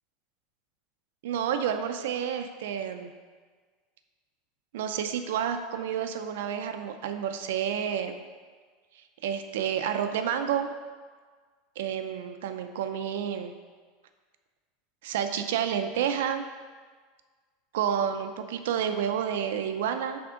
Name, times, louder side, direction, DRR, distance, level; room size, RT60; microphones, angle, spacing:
voice 1, 1.2-3.1 4.7-8.2 9.2-10.7 11.8-13.5 15.0-16.4 17.7-20.2, right 8 dB, 85° right, 7 dB, 0.5 m, -29 dB
6.0 x 3.5 x 5.0 m, 1.5 s
supercardioid pair, 180°, 0 cm